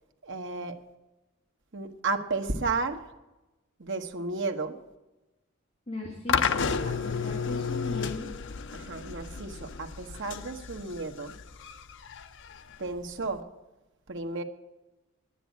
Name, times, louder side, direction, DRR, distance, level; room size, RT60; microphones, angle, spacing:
voice 1, 0.2-0.8 1.7-3.0 3.8-4.8 8.7-11.3 12.8-13.4 14.1-14.4, right 3 dB, 65° right, 5 dB, 1.2 m, -33 dB
voice 2, 5.9-8.3, left 1 dB, 35° left, -2 dB, 2.1 m, -38 dB
sound 1, 6.3-13.4, left 6 dB, 65° left, 0.7 m, -32 dB
10.5 x 10.0 x 8.3 m, 1.0 s
head